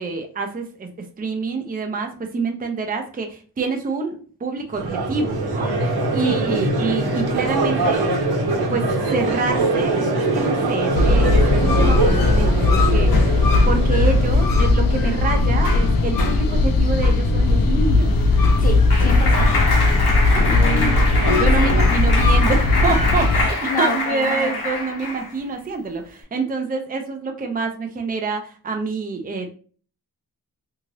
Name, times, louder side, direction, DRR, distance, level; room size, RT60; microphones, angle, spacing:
voice 1, 0.0-8.1 8.7-18.1 20.3-29.6, right 4 dB, 25° right, 4 dB, 0.5 m, -27 dB
Crowd, 4.7-14.9, right 2 dB, 75° right, 0.9 m, -23 dB
sound 1, 10.9-23.5, left 2 dB, 60° left, 0.5 m, -17 dB
Clapping, 18.1-25.3, left 3 dB, 75° left, 0.9 m, -25 dB
voice 2, 18.6-19.7 21.6-21.7 23.7-24.5, left 2 dB, 20° left, 2 dB, 0.7 m, -27 dB
2.7 x 2.4 x 3.1 m, 0.41 s
wide cardioid pair, 90°, 39 cm